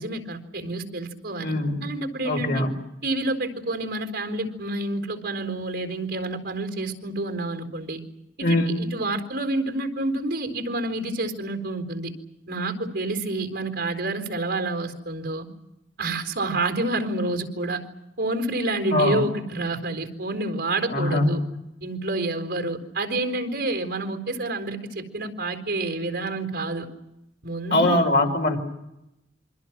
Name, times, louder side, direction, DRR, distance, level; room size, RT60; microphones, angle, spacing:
voice 1, 0.0-1.5 1.8-2.6 3.0-8.0 8.4-12.1 12.5-15.5 16.0-17.8 18.2-21.4 21.8-26.9 27.4-28.0, right 2 dB, 70° right, 5 dB, 4.2 m, -28 dB
voice 2, 1.4-1.8 2.2-2.7 8.4-8.8 18.9-19.2 20.9-21.6 27.7-28.6, left 1 dB, 60° left, 3 dB, 4.9 m, -22 dB
28.0 x 24.5 x 6.1 m, 0.88 s
head